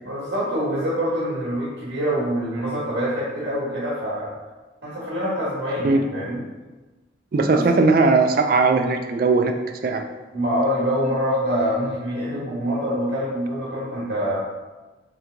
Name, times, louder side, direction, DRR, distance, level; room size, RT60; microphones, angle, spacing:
voice 1, 0.0-4.3 4.8-6.4 7.4-7.6 10.3-14.4, equal, 75° right, -9 dB, 1.4 m, -25 dB
voice 2, 7.3-9.5 9.8-10.0, right 3 dB, 50° right, 5 dB, 0.3 m, -18 dB
3.3 x 3.1 x 3.8 m, 1.2 s
head